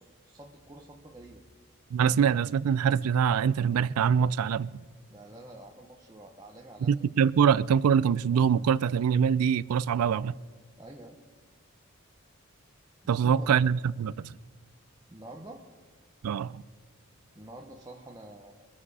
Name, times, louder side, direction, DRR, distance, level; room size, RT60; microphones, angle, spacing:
voice 1, 0.0-1.4 5.1-6.9 9.9-10.1 10.8-11.2 13.0-13.6 15.1-15.6 17.3-18.7, right 1 dB, 15° right, 0.8 m, -47 dB
voice 2, 1.9-4.8 6.8-10.3 13.1-14.3 16.2-16.6, right 7 dB, 90° right, 0.4 m, -24 dB
23.0 x 7.7 x 4.8 m
head